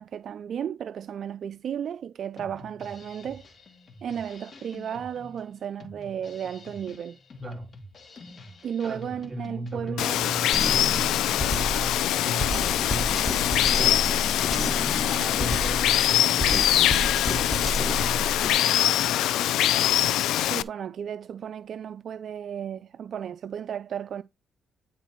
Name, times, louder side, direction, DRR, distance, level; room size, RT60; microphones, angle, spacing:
voice 1, 0.0-3.4 4.0-7.2 8.6-10.2 20.4-24.2, right 8 dB, 60° right, 0.4 m, -34 dB
Drum kit, 2.4-10.0, left 2 dB, 45° left, 2.3 m, -47 dB
voice 2, 7.4-7.7 8.8-11.0 11.4-14.7 15.1-18.7, right 2 dB, 25° right, 3.0 m, -39 dB
Water, 10.0-20.6, left 12 dB, 85° left, 0.4 m, -23 dB
Drum kit 2, 10.5-18.5, equal, 15° left, 1.5 m, -31 dB
10.0 x 4.0 x 4.5 m
cardioid pair, 90°, 0 cm